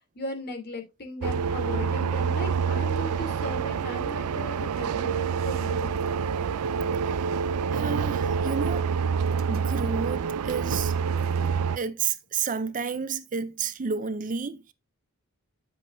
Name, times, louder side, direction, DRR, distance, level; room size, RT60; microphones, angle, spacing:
voice 1, 0.1-6.0, left 2 dB, 45° left, 3.2 m, -37 dB
sound 1, 1.2-11.8, right 6 dB, 85° right, 0.4 m, -27 dB
sound 2, 4.5-11.6, right 3 dB, 65° right, 1.1 m, -46 dB
voice 2, 7.7-8.9 9.5-10.9 11.8-14.7, right 5 dB, 35° right, 0.5 m, -31 dB
10.5 x 7.5 x 2.7 m
head